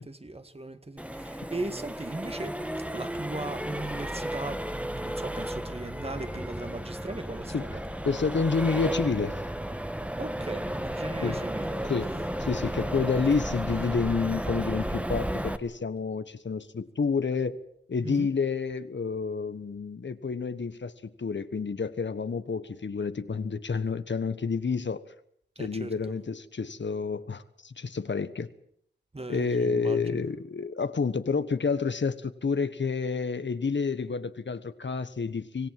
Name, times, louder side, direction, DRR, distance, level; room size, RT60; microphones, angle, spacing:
voice 1, 0.0-2.6 2.9-7.8 10.2-12.2 13.0-13.1 18.0-18.3 25.6-26.1 29.1-30.3, right 2 dB, 35° right, 10 dB, 1.9 m, -38 dB
Accelerating revving vroom, 1.0-15.6, equal, 5° right, 1.4 m, -33 dB
voice 2, 8.0-9.4 11.2-11.4 11.9-12.1 12.4-17.6 17.9-20.9 21.2-25.1 25.6-28.5 29.3-35.7, left 5 dB, 80° left, 13 dB, 1.3 m, -29 dB
25.0 x 18.0 x 7.6 m, 0.68 s
wide cardioid pair, 80°, 19 cm